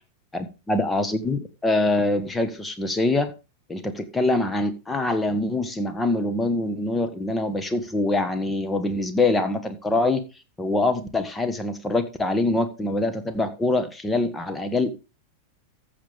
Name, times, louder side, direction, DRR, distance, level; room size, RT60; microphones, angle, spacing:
voice 1, 0.3-3.3 3.7-10.2 10.6-15.0, left 2 dB, 10° left, 8 dB, 1.5 m, -24 dB
14.0 x 6.7 x 3.6 m, 0.30 s
figure-of-eight pair, 90°, 0 cm